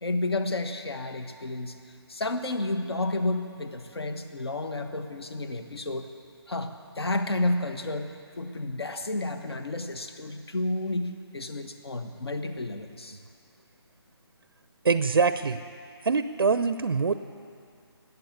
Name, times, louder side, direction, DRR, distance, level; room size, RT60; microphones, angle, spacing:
voice 1, 0.0-1.8 2.1-6.1 6.5-13.2, left 2 dB, 70° left, 8 dB, 1.4 m, -31 dB
voice 2, 14.8-15.6 16.0-17.1, right 5 dB, 65° right, 12 dB, 0.6 m, -24 dB
20.0 x 8.2 x 8.4 m, 2.4 s
figure-of-eight pair, 150°, 14 cm